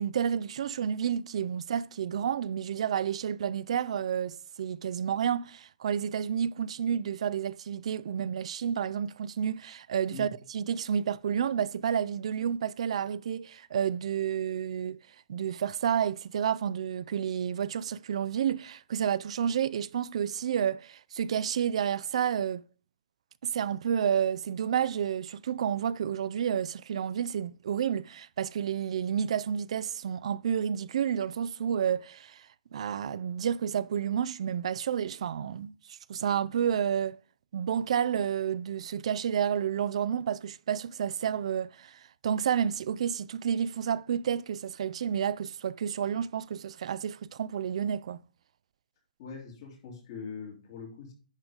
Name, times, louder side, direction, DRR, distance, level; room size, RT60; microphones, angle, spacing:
voice 1, 0.0-15.0 15.3-22.7 23.4-32.5 32.7-37.2 37.5-48.2, right 8 dB, 45° right, 0.3 m, -30 dB
voice 2, 49.2-51.1, left 5 dB, 30° left, 2.7 m, -42 dB
10.5 x 3.9 x 4.9 m
hypercardioid pair, 175°, 5 cm